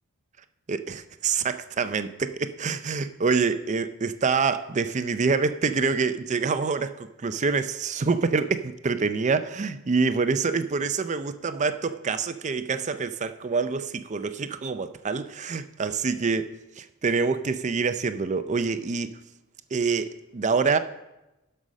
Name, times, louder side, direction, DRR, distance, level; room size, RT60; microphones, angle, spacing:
voice 1, 0.7-16.5 16.8-19.1 19.7-20.8, right 4 dB, 35° right, 0.5 m, -26 dB
11.0 x 5.5 x 6.3 m
head